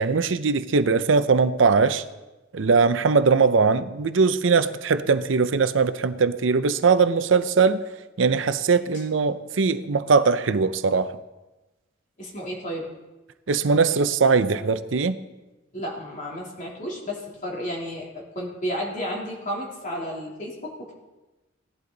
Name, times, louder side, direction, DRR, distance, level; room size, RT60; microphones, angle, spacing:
voice 1, 0.0-2.0 2.5-7.8 8.2-11.2 13.5-15.2, right 4 dB, 75° right, 12 dB, 0.6 m, -20 dB
voice 2, 12.2-12.9 15.7-20.9, equal, 40° left, -2 dB, 3.3 m, -32 dB
17.0 x 11.5 x 4.0 m, 1.1 s
head